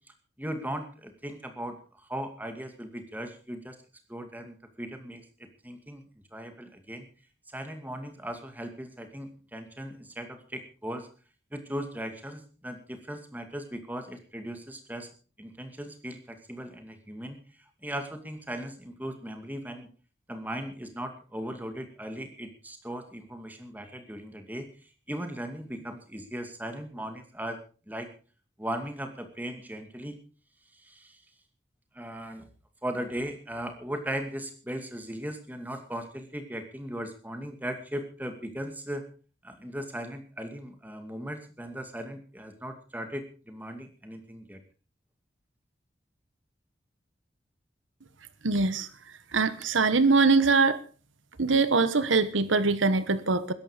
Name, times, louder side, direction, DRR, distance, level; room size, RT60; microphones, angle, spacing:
voice 1, 0.4-3.8 4.1-6.0 6.3-7.1 7.5-11.1 11.5-15.1 15.4-17.4 17.8-19.9 20.3-27.6 27.9-28.1 28.6-30.2 30.7-31.2 31.9-32.5 32.8-39.0 39.4-44.6, equal, 10° right, 6 dB, 2.3 m, -38 dB
voice 2, 48.4-48.9 49.3-50.8 51.4-53.5, right 4 dB, 85° right, 14 dB, 1.2 m, -23 dB
21.0 x 11.0 x 5.1 m, 0.38 s
head